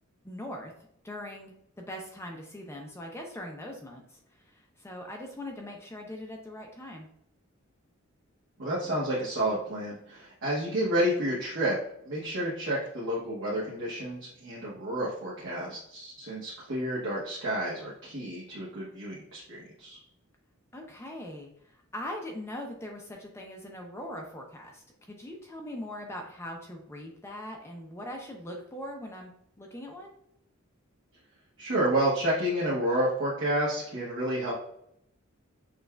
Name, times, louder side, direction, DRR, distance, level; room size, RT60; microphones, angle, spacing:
voice 1, 0.2-0.7 1.0-7.1 20.7-29.3 29.6-30.1, left 1 dB, 10° left, 1 dB, 0.5 m, -41 dB
voice 2, 8.6-11.8 12.0-20.0 31.6-34.5, right 1 dB, 60° right, -7 dB, 1.0 m, -30 dB
6.2 x 2.3 x 2.2 m, 0.73 s
head